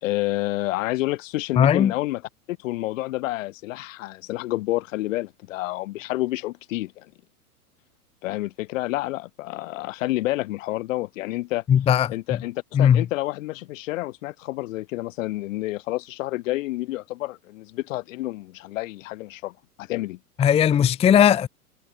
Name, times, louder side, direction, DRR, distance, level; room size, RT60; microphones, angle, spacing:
voice 1, 0.0-2.2 2.5-7.1 8.2-11.6 12.1-20.2, left 18 dB, 55° left, 1.8 m, -29 dB
voice 2, 1.6-1.9 11.7-12.1 12.7-13.0 20.4-21.5, left 9 dB, 15° left, 0.7 m, -17 dB
hypercardioid pair, 105°, 46 cm